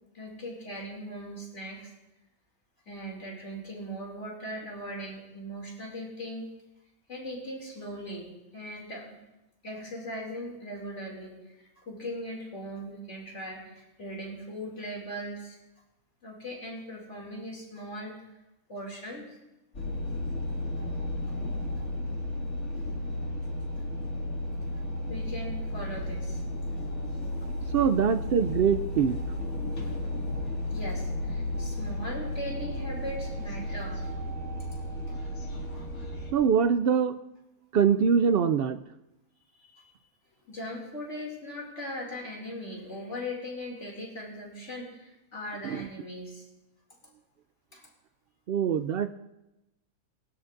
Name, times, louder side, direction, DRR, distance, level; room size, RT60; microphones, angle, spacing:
voice 1, 0.1-1.9 2.9-6.5 7.1-9.2 9.6-15.6 16.2-18.2 18.7-19.3 25.1-26.4 27.6-27.7 30.7-34.1 34.7-34.8 39.5-39.9 40.4-46.4 47.7-47.8, equal, 55° left, -2 dB, 3.0 m, -39 dB
sound 1, 19.7-36.3, left 1 dB, 75° left, 2.8 m, -33 dB
voice 2, 27.7-29.2 36.3-37.2 37.7-38.8 45.6-45.9 48.5-49.1, right 7 dB, 75° right, 10 dB, 0.5 m, -24 dB
20.5 x 12.5 x 2.6 m, 0.93 s
omnidirectional pair, 1.5 m